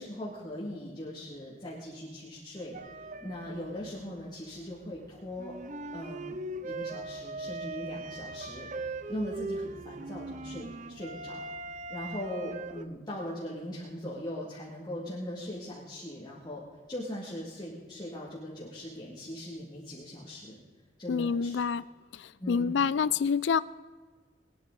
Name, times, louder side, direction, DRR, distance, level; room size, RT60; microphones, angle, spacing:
voice 1, 0.0-2.8 3.2-5.6 5.9-6.4 6.6-16.6 16.9-20.6 21.0-21.6 22.4-22.8, left 1 dB, 25° left, -6 dB, 2.3 m, -40 dB
sound 1, 2.7-12.8, right 2 dB, 45° right, 0.6 m, -40 dB
voice 2, 21.1-21.8 22.1-23.6, left 6 dB, 85° left, 17 dB, 0.4 m, -27 dB
22.0 x 10.5 x 3.9 m, 1.4 s
head